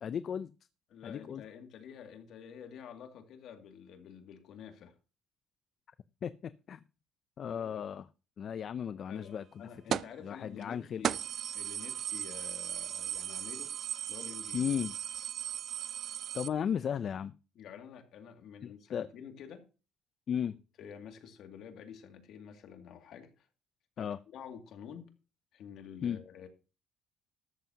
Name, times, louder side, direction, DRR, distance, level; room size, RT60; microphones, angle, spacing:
voice 1, 0.0-0.5 1.0-1.4 6.2-6.3 6.7-6.8 7.4-8.0 8.4-9.4 9.9-10.0 10.2-11.0 14.5-14.9 16.3-17.3 18.9-19.1 20.3-20.5 24.0-24.2 26.0-26.2, left 8 dB, 50° left, 0.5 m, -34 dB
voice 2, 0.9-4.9 7.5-7.9 9.1-11.2 11.5-13.7 14.0-14.7 17.5-19.7 20.8-23.5 24.0-25.1 25.5-26.5, left 8 dB, 65° left, 2.3 m, -49 dB
sound 1, 9.9-10.2 10.6-10.7 11.0-16.5, right 9 dB, 55° right, 0.5 m, -37 dB
13.5 x 12.5 x 2.8 m
cardioid pair, 110°, 0 cm